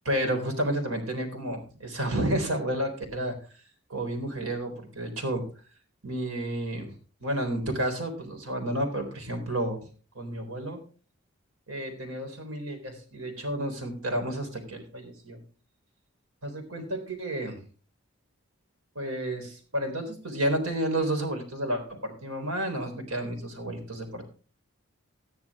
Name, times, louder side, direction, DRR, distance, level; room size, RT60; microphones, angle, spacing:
voice 1, 0.0-3.4 3.9-5.4 6.0-6.9 7.2-9.8 10.1-10.8 11.7-15.4 16.4-17.6 19.0-24.2, right 1 dB, 85° right, 4 dB, 3.9 m, -31 dB
14.0 x 10.5 x 3.6 m, 0.37 s
head